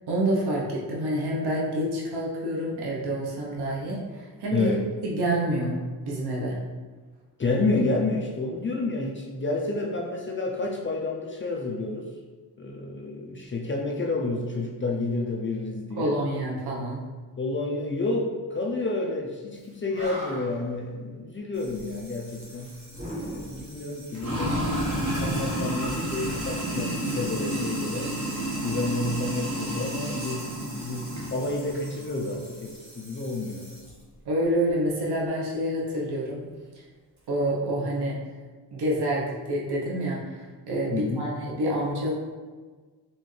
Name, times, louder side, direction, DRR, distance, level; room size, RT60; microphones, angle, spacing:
voice 1, 0.1-4.7 5.0-5.8 6.0-6.6 16.0-17.0 34.3-36.4 37.3-38.2 38.7-42.1, right 1 dB, 65° right, -4 dB, 0.9 m, -27 dB
voice 2, 4.5-4.9 7.4-12.1 12.6-16.1 17.4-22.7 23.2-28.1 28.6-33.7 40.9-41.3, left 2 dB, 30° left, -1 dB, 0.4 m, -30 dB
Animal, 19.6-19.7 19.9-20.7 22.9-23.8 25.8-27.1, equal, 15° right, 1.1 m, -38 dB
Sink (filling or washing), 21.6-33.9, right 1 dB, 40° right, 1.3 m, -32 dB
4.3 x 3.2 x 3.2 m, 1.4 s
wide cardioid pair, 135°, 41 cm